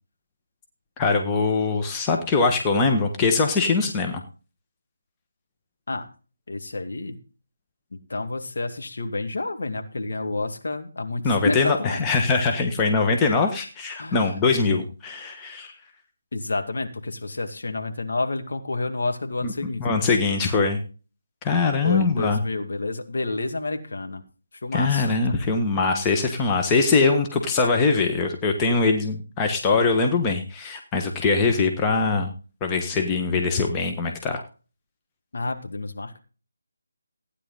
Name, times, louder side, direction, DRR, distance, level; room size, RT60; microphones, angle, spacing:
voice 1, 1.0-4.2 11.2-15.7 19.8-20.8 21.4-22.4 24.7-32.3 32.6-34.4, left 4 dB, 15° left, 3 dB, 1.4 m, -22 dB
voice 2, 6.5-7.2 8.1-12.1 14.0-14.8 16.3-20.0 21.8-24.2 24.6-25.5 35.3-36.2, left 2 dB, 55° left, 6 dB, 2.1 m, -30 dB
16.0 x 9.8 x 4.0 m, 0.37 s
figure-of-eight pair, 155°, 0 cm